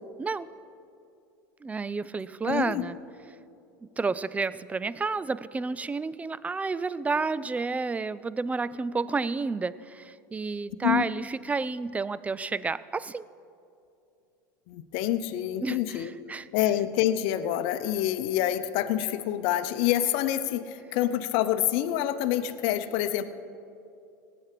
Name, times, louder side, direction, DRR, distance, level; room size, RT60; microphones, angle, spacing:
voice 1, 0.2-0.5 1.6-3.0 4.0-13.2 15.6-15.8 16.3-16.5, right 4 dB, 15° right, 18 dB, 0.4 m, -30 dB
voice 2, 2.4-2.8 10.8-11.1 14.7-16.1 16.5-23.2, left 12 dB, 60° left, 10 dB, 0.8 m, -27 dB
18.5 x 8.9 x 4.9 m, 2.6 s
hypercardioid pair, 90°, 11 cm